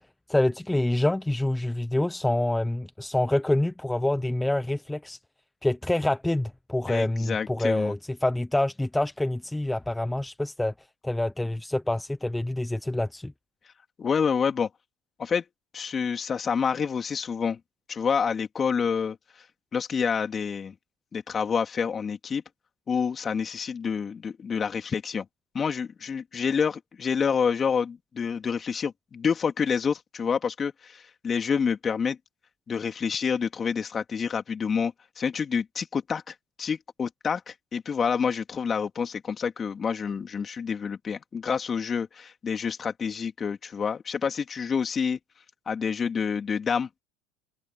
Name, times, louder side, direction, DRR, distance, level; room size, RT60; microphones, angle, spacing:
voice 1, 0.3-5.2 5.6-10.7 11.0-13.3, left 1 dB, 5° left, 0.9 m, -26 dB
voice 2, 6.9-7.9 14.0-14.7 15.2-15.4 15.7-17.6 17.9-19.4 19.7-20.7 21.1-22.4 22.9-25.3 25.5-32.2 32.7-45.2 45.7-46.9, left 6 dB, 30° left, 3.3 m, -28 dB
hypercardioid pair, 95°, 0 cm